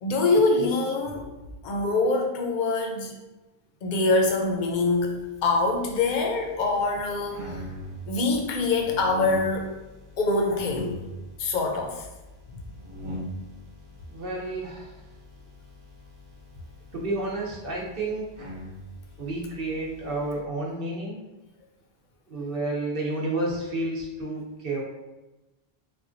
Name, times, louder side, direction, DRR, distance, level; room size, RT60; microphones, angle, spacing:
voice 1, 0.0-1.3 1.6-3.1 3.8-5.1 5.4-7.5 8.1-9.7 10.2-10.9 11.4-12.0, left 3 dB, 55° left, 2 dB, 0.6 m, -24 dB
sound 1, 5.0-20.4, equal, 40° right, 0.5 m, -42 dB
voice 2, 14.1-14.9 16.9-18.3 19.2-21.2 22.3-24.8, right 2 dB, 65° right, -3 dB, 0.9 m, -30 dB
4.1 x 2.2 x 2.5 m, 1.1 s
omnidirectional pair, 1.0 m